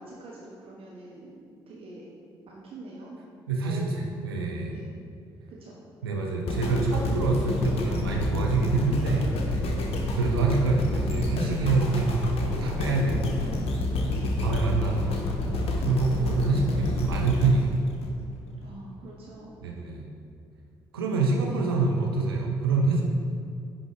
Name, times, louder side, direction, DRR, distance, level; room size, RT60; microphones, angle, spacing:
voice 1, 0.0-2.1 2.5-3.2 3.6-3.9 4.7-4.8 5.5-5.8 9.8-10.0 14.0-14.3 18.6-19.5 21.1-21.6, right 2 dB, 50° right, -4 dB, 0.9 m, -45 dB
voice 2, 3.5-4.7 6.0-9.3 10.1-13.6 14.2-17.7 19.6-20.1 20.9-23.0, right 3 dB, 85° right, 0 dB, 0.6 m, -26 dB
sound 1, 6.5-18.7 19.2-19.3, left 2 dB, 55° left, 0.8 m, -29 dB
9.8 x 3.9 x 3.2 m, 2.4 s
figure-of-eight pair, 45°, 12 cm